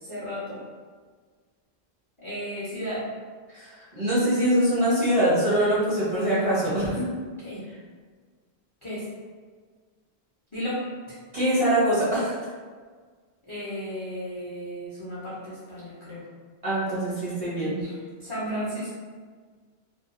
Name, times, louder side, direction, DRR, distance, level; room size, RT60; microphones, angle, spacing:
voice 1, 0.0-0.6 2.2-3.0 7.4-7.6 8.8-9.0 10.5-10.8 13.5-16.2 17.8-17.9 18.2-19.0, equal, 35° left, -11 dB, 0.6 m, -34 dB
voice 2, 3.5-7.0 11.3-12.3 16.6-17.8, right 1 dB, 35° right, -10 dB, 0.8 m, -23 dB
2.6 x 2.2 x 2.4 m, 1.5 s
omnidirectional pair, 1.1 m